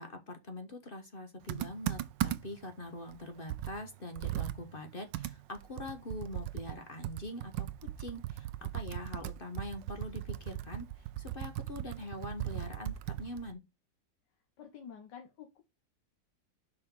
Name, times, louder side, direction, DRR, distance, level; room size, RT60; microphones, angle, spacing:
voice 1, 0.0-7.7 8.0-10.9 11.2-13.6, left 1 dB, 35° left, 1.1 m, -43 dB
Computer keyboard, 1.5-2.7 3.1-3.2 3.5-6.8 7.0-13.5, right 13 dB, 80° right, 1.3 m, -38 dB
voice 2, 14.6-15.6, left 7 dB, 75° left, 1.8 m, -49 dB
5.9 x 4.8 x 6.2 m
omnidirectional pair, 1.9 m